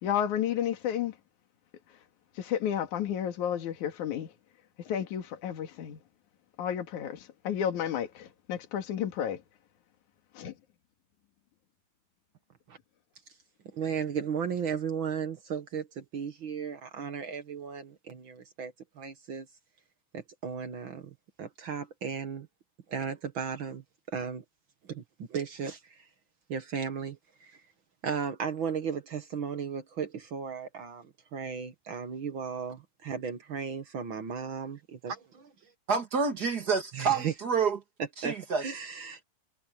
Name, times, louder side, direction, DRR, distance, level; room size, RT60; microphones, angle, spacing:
voice 1, 0.0-1.2 2.4-4.3 4.8-6.0 6.6-9.4 10.3-10.5, left 9 dB, 60° left, 3.2 m, -32 dB
voice 2, 13.7-19.5 20.1-22.5 22.9-24.4 24.9-26.0 26.5-27.6 28.0-35.5 36.9-37.3 38.2-39.2, right 7 dB, 60° right, 1.3 m, -35 dB
voice 3, 35.9-37.8 38.2-38.6, right 5 dB, 40° right, 1.5 m, -28 dB
omnidirectional pair, 4.2 m